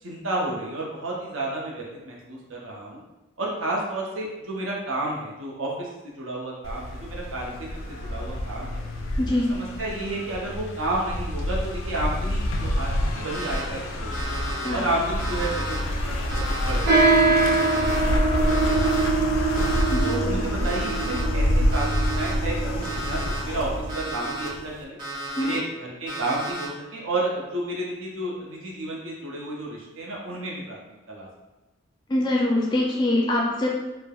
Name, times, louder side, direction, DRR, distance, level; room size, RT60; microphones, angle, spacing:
voice 1, 0.0-3.0 3.4-8.8 9.5-14.1 14.7-19.6 20.0-25.0 25.4-30.8 31.1-31.3, right 2 dB, 90° right, -3 dB, 0.7 m, -31 dB
sound 1, 6.6-24.8, left 1 dB, 85° left, 0.4 m, -28 dB
voice 2, 9.2-9.5 14.6-14.8 19.9-20.4 25.4-25.5 32.1-33.7, left 1 dB, 20° left, -2 dB, 0.4 m, -24 dB
Alarm, 13.3-13.6 14.1-14.7 15.2-15.8 16.3-16.9 17.4-18.0 18.5-19.0 19.5-20.1 20.6-21.2 21.7-22.3 22.8-23.4 23.9-24.5 25.0-25.6 26.1-26.7, right 1 dB, 25° right, 0.7 m, -34 dB
sound 2, 16.8-24.6, right 3 dB, 55° right, 0.9 m, -24 dB
3.2 x 2.0 x 2.3 m, 1.1 s
head